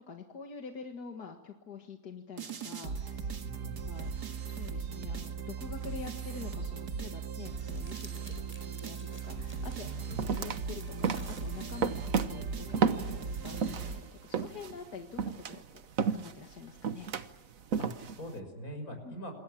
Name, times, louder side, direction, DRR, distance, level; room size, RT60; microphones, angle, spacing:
voice 1, 0.1-3.3 3.8-9.9 10.3-12.8 13.1-15.8 16.1-17.1 19.0-19.1, left 5 dB, 80° left, 4 dB, 2.3 m, -46 dB
sound 1, 2.4-14.5, right 5 dB, 85° right, 2.4 m, -38 dB
voice 2, 3.4-3.8 9.8-10.3 17.8-19.3, equal, 65° left, 5 dB, 6.3 m, -42 dB
Crumpling crinkling, 7.2-12.2, equal, 5° right, 4.5 m, -57 dB
sound 2, 9.2-9.3 9.7-14.0 14.3-18.3, right 6 dB, 60° right, 1.5 m, -32 dB
27.5 x 22.0 x 7.5 m, 1.1 s
omnidirectional pair, 1.7 m